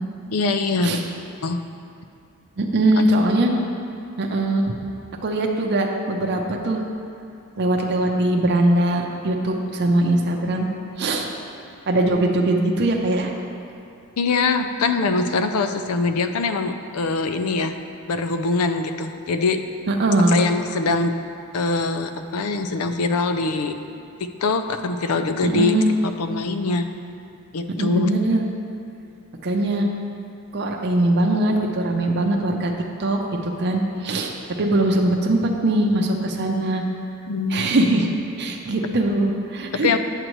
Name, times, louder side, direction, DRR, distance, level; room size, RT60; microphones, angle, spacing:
voice 1, 0.3-1.0 1.4-1.6 14.2-17.8 18.1-19.6 20.3-21.2 21.5-23.8 24.2-25.8 26.0-26.9 27.5-28.1 37.3-37.8 39.8-40.0, left 3 dB, 80° left, 8 dB, 0.4 m, -23 dB
voice 2, 2.6-3.5 4.2-4.6 5.2-6.8 7.6-10.7 11.0-11.3 11.9-13.3 19.9-20.4 25.4-25.9 27.8-28.5 29.4-29.9 30.5-32.7 33.0-36.8 37.5-38.1 38.4-39.9, right 1 dB, 50° right, 1 dB, 0.6 m, -21 dB
9.0 x 6.5 x 3.1 m, 2.5 s
head